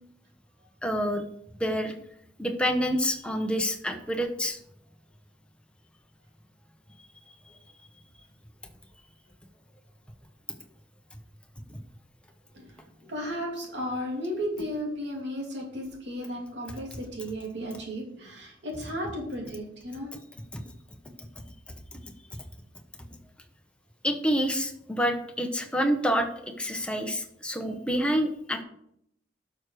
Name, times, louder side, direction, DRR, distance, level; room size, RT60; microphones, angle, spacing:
voice 1, 0.8-1.2 1.6-1.9 2.4-4.6 11.7-11.8 21.9-22.0 24.0-28.6, equal, 5° left, 4 dB, 1.1 m, -27 dB
voice 2, 13.1-20.1, equal, 70° right, -1 dB, 3.1 m, -34 dB
11.5 x 6.3 x 4.8 m, 0.73 s
head